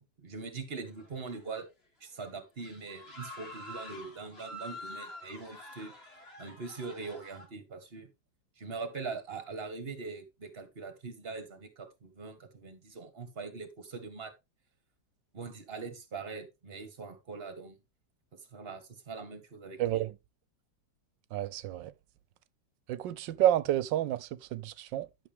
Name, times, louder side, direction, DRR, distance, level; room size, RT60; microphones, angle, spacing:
voice 1, 0.0-1.7 2.0-5.9 6.4-8.1 8.6-14.3 15.3-17.8 18.3-20.0, right 4 dB, 35° right, 1.7 m, -42 dB
sound 1, 0.9-1.7 2.0-2.2 2.6-7.5, equal, 30° left, 2.7 m, -47 dB
voice 2, 19.8-20.1 21.3-21.9 22.9-25.1, right 13 dB, 80° right, 1.3 m, -29 dB
11.0 x 6.4 x 3.4 m
omnidirectional pair, 2.0 m